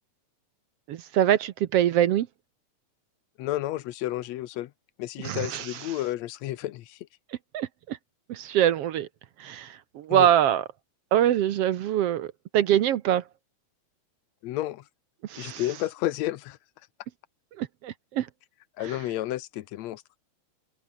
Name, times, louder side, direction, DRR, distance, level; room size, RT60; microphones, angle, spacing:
voice 1, 0.9-2.3 5.2-5.9 7.5-8.0 8.3-9.1 9.4-10.6 11.1-13.2 15.2-15.6 17.6-18.3 18.8-19.0, right 11 dB, 65° right, 1.7 m, -24 dB
voice 2, 3.4-4.7 5.0-7.0 10.1-10.3 14.4-14.8 15.4-16.6 18.8-20.0, left 15 dB, 75° left, 2.0 m, -31 dB
omnidirectional pair, 3.3 m